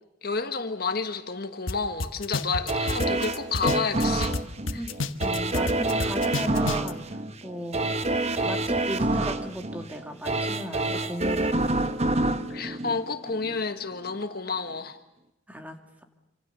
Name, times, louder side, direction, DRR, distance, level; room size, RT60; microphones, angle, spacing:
voice 1, 0.2-4.4 4.7-4.9 12.5-15.0, left 4 dB, 50° left, 8 dB, 1.5 m, -30 dB
sound 1, 1.7-1.8 2.0-4.4 4.7-6.9, left 3 dB, 85° left, 1.4 m, -29 dB
sound 2, 2.7-13.6 14.1-14.2, right 2 dB, 30° right, 1.2 m, -27 dB
voice 2, 5.2-7.9 8.4-11.8 15.5-15.7, equal, 10° right, 4 dB, 2.6 m, -36 dB
27.5 x 26.5 x 6.9 m, 0.89 s
head